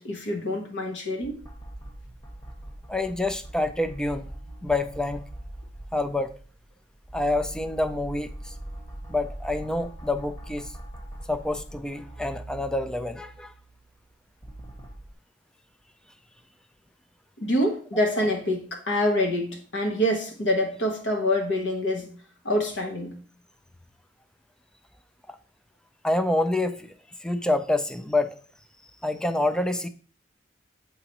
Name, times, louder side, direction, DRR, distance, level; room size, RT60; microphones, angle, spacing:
voice 1, 0.0-1.4 17.4-22.1 22.4-23.2, left 1 dB, 85° left, 1.3 m, -26 dB
sound 1, 1.2-6.6 7.0-15.1, right 1 dB, 25° left, 1.3 m, -42 dB
voice 2, 2.9-4.3 4.6-5.2 5.9-6.3 7.1-8.5 9.1-10.7 11.3-13.5 25.3-25.4 26.0-26.9 27.2-28.4 29.0-29.9, left 2 dB, 5° left, 0.3 m, -27 dB
7.0 x 4.9 x 2.9 m
head